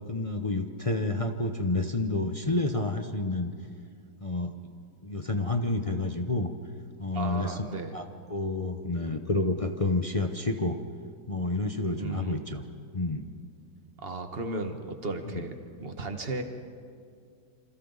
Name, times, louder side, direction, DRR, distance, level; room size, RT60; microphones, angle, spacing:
voice 1, 0.1-3.5 4.2-4.7 5.0-6.5 7.0-7.6 7.9-10.8 11.3-12.6 12.9-13.2 15.3-15.4, left 2 dB, 35° left, 5 dB, 0.6 m, -29 dB
voice 2, 7.1-7.9 12.0-12.4 14.0-15.5 15.8-16.4, right 3 dB, 35° right, 6 dB, 1.5 m, -35 dB
27.5 x 27.0 x 4.1 m, 2.3 s
omnidirectional pair, 2.0 m